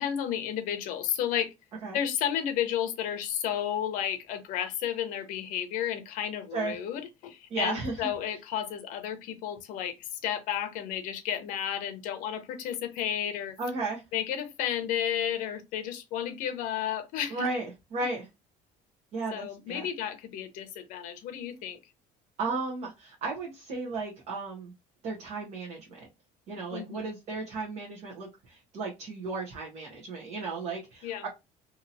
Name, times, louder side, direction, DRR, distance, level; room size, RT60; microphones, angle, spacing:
voice 1, 0.0-1.5 1.9-13.6 14.1-17.5 19.3-21.8 26.7-27.1 31.0-31.3, left 10 dB, 65° left, 0.7 m, -32 dB
voice 2, 7.5-8.0 13.6-14.0 17.3-18.3 19.1-19.9 22.4-24.7 25.0-26.1 26.5-31.3, right 3 dB, 45° right, 1.0 m, -34 dB
2.8 x 2.8 x 2.6 m
cardioid pair, 175°, 15 cm